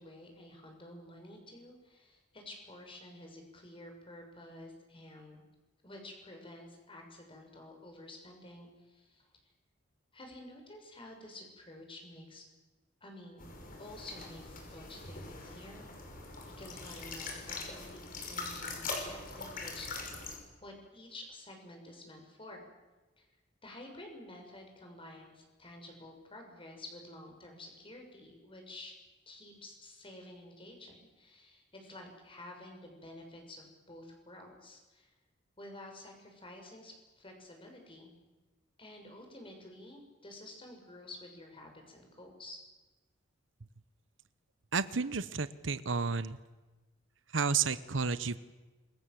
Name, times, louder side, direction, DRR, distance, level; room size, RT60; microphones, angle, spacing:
voice 1, 0.0-5.4 5.8-9.3 10.1-12.4 13.0-13.5 13.8-15.9 16.2-19.9 20.6-22.7 23.2-23.3 23.6-28.9 29.3-35.1 35.6-38.1 38.8-42.6, left 1 dB, 30° left, 3 dB, 6.3 m, -50 dB
sound 1, 13.4-20.4, left 3 dB, 50° left, 5.7 m, -42 dB
voice 2, 44.7-46.4 47.3-48.4, right 5 dB, 75° right, 15 dB, 1.0 m, -31 dB
27.0 x 22.5 x 7.8 m, 1.2 s
head